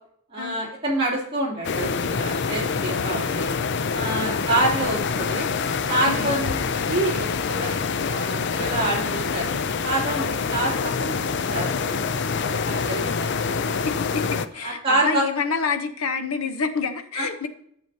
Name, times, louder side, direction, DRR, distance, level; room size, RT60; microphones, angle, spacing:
voice 1, 0.3-3.5 3.9-5.5 5.9-13.9 14.6-15.2 17.1-17.3, right 1 dB, 25° right, -5 dB, 3.1 m, -27 dB
sound 1, 1.6-14.5, left 5 dB, 50° left, 0.4 m, -26 dB
voice 2, 3.0-3.3 4.1-4.5 6.0-6.4 10.2-10.4 13.8-17.5, left 4 dB, 85° left, 7 dB, 0.9 m, -28 dB
11.0 x 6.9 x 2.8 m, 0.66 s
head